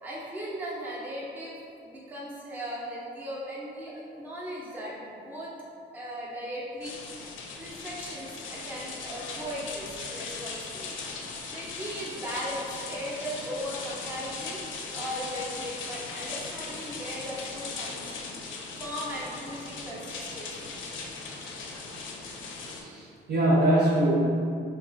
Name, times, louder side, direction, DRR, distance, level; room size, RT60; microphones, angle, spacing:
voice 1, 0.0-1.6 1.8-5.5 5.9-7.0 7.6-10.9 11.5-14.6 14.9-18.1 18.8-20.7, equal, 10° right, -6 dB, 0.5 m, -37 dB
sound 1, 6.8-22.8, left 4 dB, 75° left, 0.4 m, -39 dB
voice 2, 22.7-24.2, right 1 dB, 55° right, -5 dB, 0.8 m, -23 dB
2.9 x 2.4 x 2.5 m, 2.4 s
cardioid pair, 90°, 20 cm